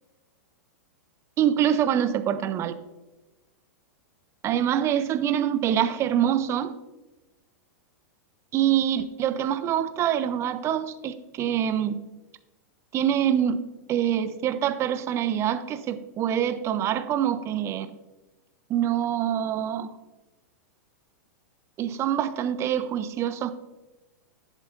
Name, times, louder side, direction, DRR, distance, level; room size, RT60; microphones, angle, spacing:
voice 1, 1.4-2.8 4.4-6.7 8.5-12.0 12.9-13.6 13.9-17.9 18.7-19.9 21.8-23.5, right 10 dB, 30° right, 12 dB, 0.6 m, -25 dB
11.0 x 7.2 x 2.6 m, 1.1 s
hypercardioid pair, 100°, 9 cm